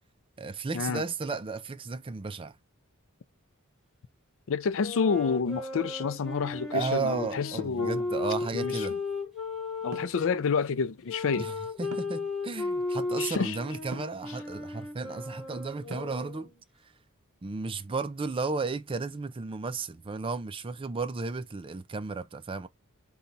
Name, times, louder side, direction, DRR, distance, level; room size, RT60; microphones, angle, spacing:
voice 1, 0.4-2.5 6.7-9.0 11.4-16.5 17.4-22.7, right 4 dB, 25° right, 0.4 m, -34 dB
voice 2, 4.5-8.0 8.5-9.0 9.8-11.5 13.2-13.6, left 5 dB, 65° left, 0.5 m, -29 dB
sound 1, 4.7-10.4 11.1-16.6, left 3 dB, ahead, 2.7 m, -35 dB
sound 2, 9.9-10.2 11.9-12.3 13.9-14.2 15.9-16.3, right 3 dB, 70° right, 0.8 m, -42 dB
4.2 x 2.3 x 3.9 m
head